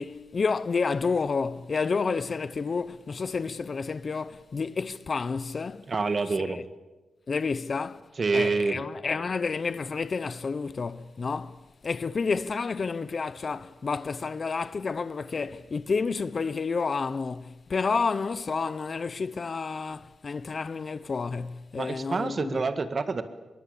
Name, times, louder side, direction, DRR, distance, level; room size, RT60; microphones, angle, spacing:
voice 1, 0.0-5.9 6.4-6.6 7.3-22.6, left 4 dB, 45° left, 0.8 m, -30 dB
voice 2, 5.9-6.6 8.2-8.8 21.7-23.2, right 4 dB, 40° right, 1.9 m, -27 dB
25.0 x 22.5 x 8.4 m
wide cardioid pair, 115°, 0 cm